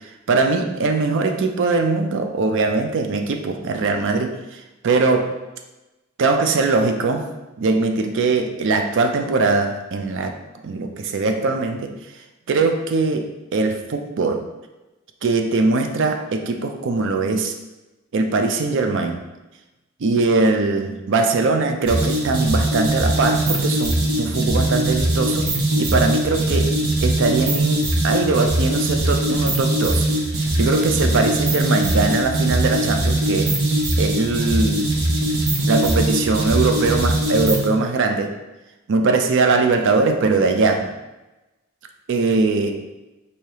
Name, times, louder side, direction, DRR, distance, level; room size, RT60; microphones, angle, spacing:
voice 1, 0.3-5.3 6.2-7.3 7.6-10.3 10.6-11.9 12.5-14.5 15.2-17.5 18.1-19.2 20.0-25.5 25.8-26.7 27.0-30.1 30.4-33.5 34.0-34.9 35.7-38.3 38.9-40.9 42.1-42.7, right 3 dB, 60° right, 5 dB, 0.4 m, -21 dB
sound 1, 21.9-37.7, right 1 dB, 90° right, 1.0 m, -21 dB
4.7 x 2.7 x 2.9 m, 1.0 s
head